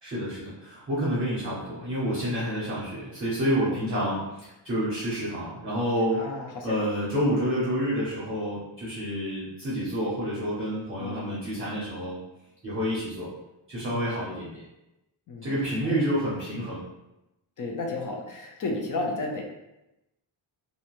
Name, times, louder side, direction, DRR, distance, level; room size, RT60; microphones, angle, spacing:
voice 1, 0.0-6.3 6.6-12.2 12.6-13.3 13.7-14.6 15.4-16.8, equal, 25° right, -8 dB, 0.6 m, -29 dB
voice 2, 6.1-6.8 11.0-11.4 13.9-14.2 15.3-15.5 15.8-16.0 17.6-19.4, left 2 dB, 45° left, 1 dB, 0.4 m, -33 dB
2.6 x 2.1 x 2.9 m, 0.94 s
wide cardioid pair, 170°, 49 cm